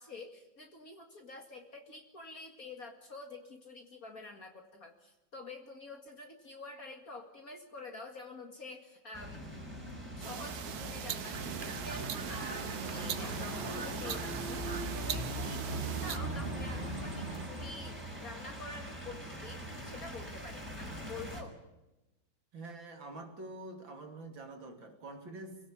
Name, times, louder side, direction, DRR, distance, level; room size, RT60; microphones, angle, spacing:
voice 1, 0.0-9.5 10.2-21.6, left 3 dB, 45° left, 3 dB, 2.5 m, -48 dB
sound 1, 9.1-21.4, equal, 5° right, 4.9 m, -42 dB
sound 2, 10.2-16.2, right 8 dB, 60° right, 1.4 m, -41 dB
sound 3, 11.3-17.5, right 3 dB, 30° right, 1.3 m, -40 dB
voice 2, 22.5-25.6, right 2 dB, 75° right, 4 dB, 3.8 m, -46 dB
26.0 x 17.0 x 8.7 m, 1.0 s
omnidirectional pair, 2.1 m